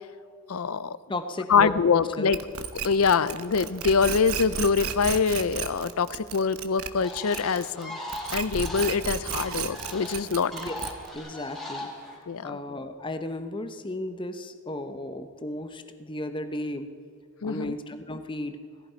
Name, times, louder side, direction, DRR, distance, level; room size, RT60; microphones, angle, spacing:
voice 1, 0.5-1.0 1.5-2.4 2.8-8.0 8.3-10.5 12.3-12.6 17.4-17.8, left 5 dB, 80° left, 16 dB, 0.6 m, -24 dB
voice 2, 1.1-2.3 10.5-10.7 11.1-16.9 17.4-18.6, left 1 dB, 20° left, 8 dB, 0.9 m, -35 dB
sound 1, 2.3-7.8 8.1-11.2, right 7 dB, 80° right, 1.0 m, -33 dB
sound 2, 7.0-12.2, left 1 dB, ahead, 3.3 m, -39 dB
17.5 x 15.0 x 4.5 m, 2.2 s
head